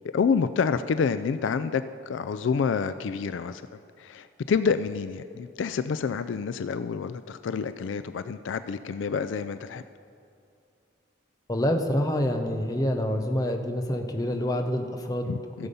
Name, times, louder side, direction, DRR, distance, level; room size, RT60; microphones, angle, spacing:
voice 1, 0.1-3.6 4.0-9.8 15.3-15.7, left 5 dB, 70° left, 12 dB, 0.3 m, -28 dB
voice 2, 11.5-15.3 15.6-15.7, left 1 dB, 20° left, 4 dB, 0.8 m, -27 dB
15.0 x 7.0 x 5.4 m, 2.4 s
head